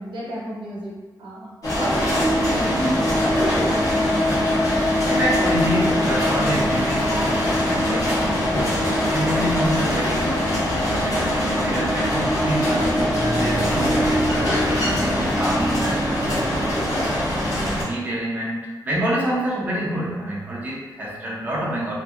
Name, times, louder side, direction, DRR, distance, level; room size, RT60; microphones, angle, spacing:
voice 1, 0.0-3.3, right 1 dB, 85° right, -6 dB, 0.8 m, -29 dB
sound 1, 1.6-17.8, left 1 dB, 45° left, 0.8 m, -21 dB
voice 2, 5.1-10.3 11.0-16.3 17.2-21.9, right 1 dB, 20° right, -5 dB, 0.4 m, -28 dB
2.7 x 2.5 x 2.4 m, 1.3 s
wide cardioid pair, 150°, 8 cm